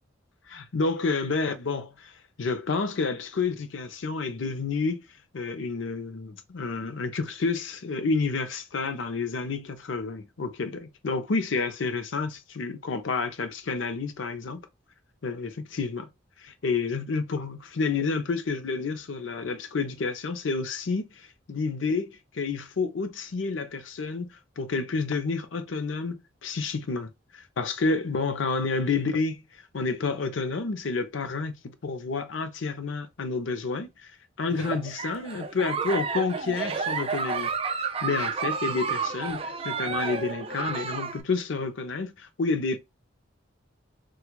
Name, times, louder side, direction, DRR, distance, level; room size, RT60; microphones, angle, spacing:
voice 1, 0.5-5.0 5.3-14.6 15.2-16.1 16.4-34.1 34.4-37.5 37.8-42.8, left 4 dB, 75° left, 0.6 m, -30 dB
Giggle, 34.5-41.2, right 5 dB, 30° right, 0.4 m, -31 dB
4.5 x 2.4 x 2.2 m
head